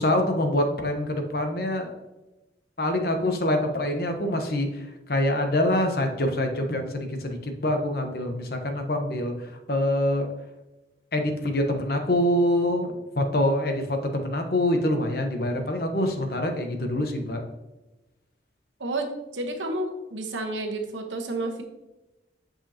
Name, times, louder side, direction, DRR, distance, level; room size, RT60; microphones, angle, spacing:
voice 1, 0.0-1.9 2.8-10.3 11.1-17.5, left 1 dB, 55° left, 5 dB, 1.0 m, -25 dB
voice 2, 18.8-21.6, right 2 dB, 90° right, 3 dB, 1.1 m, -30 dB
8.6 x 5.4 x 2.8 m, 1.0 s
head